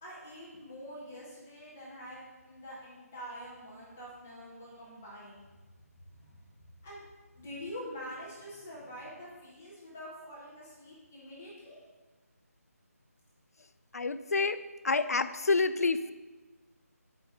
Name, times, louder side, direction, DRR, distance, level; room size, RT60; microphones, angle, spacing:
voice 1, 0.0-5.4 6.2-6.4 6.8-7.0 7.3-11.9, equal, 5° left, -6 dB, 0.4 m, -45 dB
voice 2, 13.9-16.1, left 4 dB, 75° left, 12 dB, 0.4 m, -28 dB
6.5 x 4.6 x 4.8 m, 1.3 s
figure-of-eight pair, 180°, 9 cm